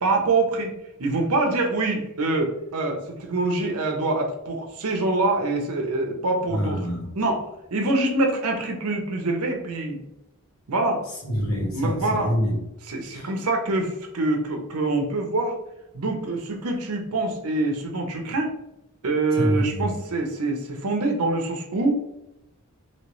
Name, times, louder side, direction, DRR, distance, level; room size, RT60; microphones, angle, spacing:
voice 1, 0.0-0.7 1.0-6.9 7.2-7.4 7.7-10.0 10.7-11.0 11.7-12.4 12.8-15.5 15.9-18.5 19.0-21.9, right 2 dB, 85° right, 3 dB, 0.7 m, -25 dB
voice 2, 6.5-7.1 11.3-11.9 12.2-12.5 19.4-19.9, equal, 65° left, -3 dB, 1.3 m, -25 dB
3.0 x 2.9 x 3.0 m, 0.87 s
head